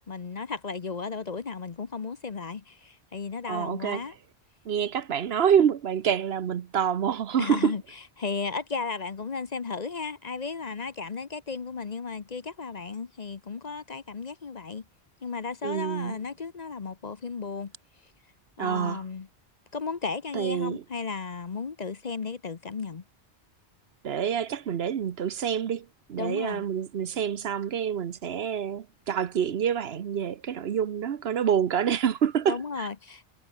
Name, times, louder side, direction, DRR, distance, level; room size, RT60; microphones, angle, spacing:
voice 1, 0.1-4.1 7.4-7.8 8.2-14.8 15.2-17.7 18.6-19.3 19.7-23.0 26.2-26.6 32.5-33.3, left 5 dB, 40° left, 0.9 m, -34 dB
voice 2, 3.5-4.0 4.7-7.7 15.6-16.2 18.6-19.0 20.3-20.8 24.0-32.9, right 8 dB, 65° right, 1.0 m, -27 dB
omnidirectional pair, 1.1 m